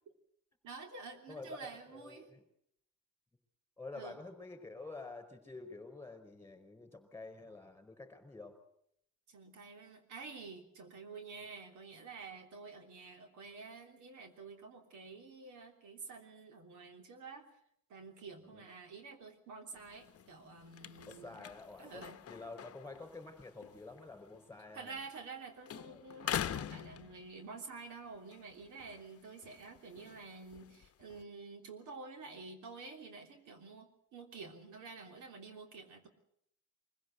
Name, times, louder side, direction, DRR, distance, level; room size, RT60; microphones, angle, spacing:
voice 1, 0.6-2.3 3.9-4.2 9.3-17.5 17.9-21.4 21.8-22.2 24.7-36.1, right 4 dB, 90° right, 4 dB, 3.3 m, -49 dB
voice 2, 1.3-2.4 3.8-8.6 18.4-18.7 21.1-25.0 25.9-26.1, left 3 dB, 10° left, 7 dB, 4.8 m, -49 dB
sound 1, 19.7-25.4 25.6-27.7 28.1-31.2, left 10 dB, 55° left, 0.8 m, -45 dB
23.5 x 16.5 x 8.1 m, 0.73 s
cardioid pair, 100°, 29 cm